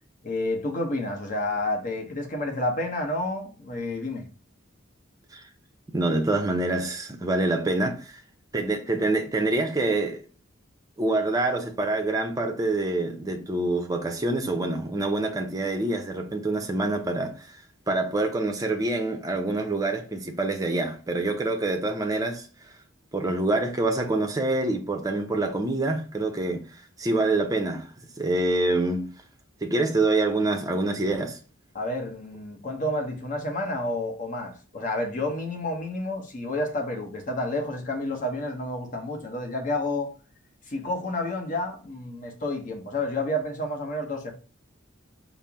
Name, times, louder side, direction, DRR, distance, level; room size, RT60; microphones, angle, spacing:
voice 1, 0.2-4.2 31.7-40.1 40.7-44.3, left 1 dB, 40° left, 0.8 m, -30 dB
voice 2, 5.9-8.2 8.5-10.2 11.0-17.5 17.9-22.5 23.1-26.6 27.0-27.9 28.2-29.1 29.6-31.4, right 2 dB, 15° right, 0.5 m, -26 dB
4.3 x 2.0 x 3.4 m
head